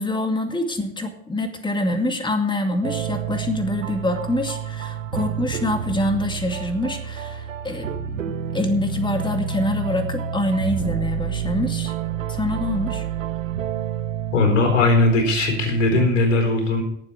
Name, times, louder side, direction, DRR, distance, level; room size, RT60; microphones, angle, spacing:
voice 1, 0.0-11.9 12.3-13.0, left 1 dB, 10° left, 6 dB, 2.2 m, -25 dB
sound 1, 2.8-16.1, right 8 dB, 85° right, 1.2 m, -29 dB
voice 2, 14.3-16.8, left 2 dB, 75° left, 4 dB, 4.2 m, -19 dB
18.0 x 7.6 x 5.0 m, 0.76 s
hypercardioid pair, 80°, 38 cm